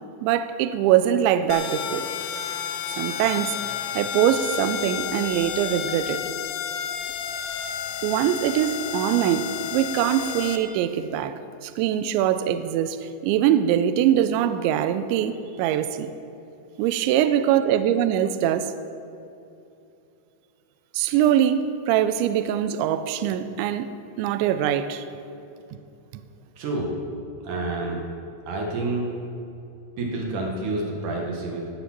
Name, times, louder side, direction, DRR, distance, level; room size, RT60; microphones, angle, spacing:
voice 1, 0.2-2.1 3.0-3.6 4.0-6.2 8.0-13.0 13.2-16.1 16.8-18.7 20.9-23.9 24.2-25.1 26.1-26.2, right 10 dB, 85° right, 11 dB, 2.6 m, -23 dB
sound 1, 1.5-10.6, left 9 dB, 85° left, 3.1 m, -31 dB
voice 2, 26.6-26.9 27.4-28.0 28.5-29.2 30.0-31.7, right 2 dB, 60° right, -1 dB, 2.2 m, -28 dB
19.0 x 7.0 x 6.0 m, 2.7 s
omnidirectional pair, 5.7 m